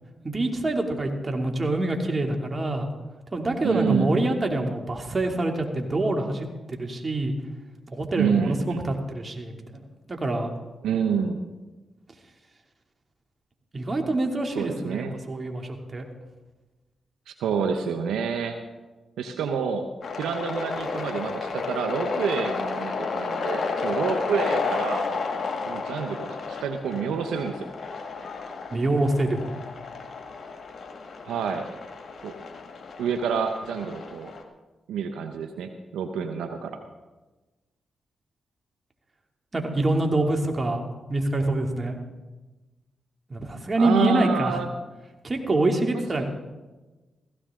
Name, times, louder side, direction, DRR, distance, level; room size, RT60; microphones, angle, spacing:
voice 1, 0.2-2.9 3.3-7.3 7.9-9.8 10.1-10.5 13.7-16.0 28.7-29.5 39.5-40.8 41.1-42.0 43.3-44.6 45.2-46.2, right 2 dB, 35° right, 2 dB, 2.8 m, -25 dB
voice 2, 3.6-4.2 8.2-8.9 10.8-11.4 14.5-15.2 17.3-18.6 19.2-19.9 20.2-25.1 25.7-27.7 31.2-31.7 32.2-32.3 33.0-34.3 34.9-36.8 43.8-44.7 45.9-46.2, right 6 dB, 85° right, 6 dB, 1.0 m, -28 dB
sound 1, 20.0-34.4, left 4 dB, 55° left, 2.1 m, -32 dB
16.5 x 16.0 x 3.8 m, 1.2 s
supercardioid pair, 45°, 0 cm